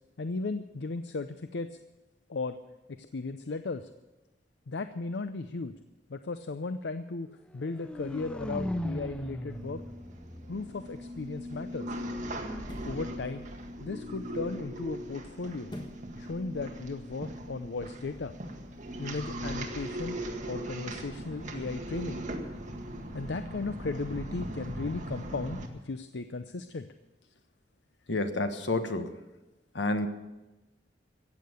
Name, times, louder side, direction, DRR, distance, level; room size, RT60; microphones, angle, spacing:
voice 1, 0.2-1.7 2.3-2.6 2.9-3.9 4.7-5.7 6.1-7.3 7.5-9.8 10.5-11.9 12.8-13.5 13.8-15.7 16.2-18.3 19.0-20.2 20.5-22.2 23.1-26.9, left 3 dB, 70° left, 10 dB, 0.6 m, -36 dB
sound 1, 7.5-11.5, left 1 dB, 5° left, 0.5 m, -38 dB
sound 2, 9.5-25.7, right 1 dB, 45° right, 1.9 m, -39 dB
sound 3, 10.8-10.9 12.6-13.0 15.7-16.1 16.6-16.7, equal, 25° left, 1.4 m, -44 dB
voice 2, 28.1-29.2 29.7-30.1, left 2 dB, 85° left, 8 dB, 1.4 m, -29 dB
15.0 x 8.7 x 9.3 m, 1.0 s
head